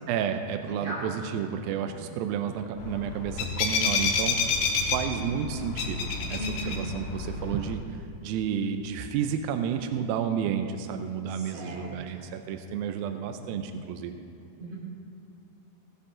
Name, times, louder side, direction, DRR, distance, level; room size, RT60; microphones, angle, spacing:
voice 1, 0.1-14.2, right 8 dB, 85° right, 7 dB, 2.1 m, -31 dB
voice 2, 0.7-1.0 6.4-6.8 11.3-12.2 13.4-13.5 14.6-14.8, right 1 dB, 55° right, -4 dB, 4.2 m, -38 dB
sound 1, 2.8-7.7, left 4 dB, 90° left, 3.3 m, -29 dB
16.0 x 9.8 x 3.7 m, 2.7 s
omnidirectional pair, 4.8 m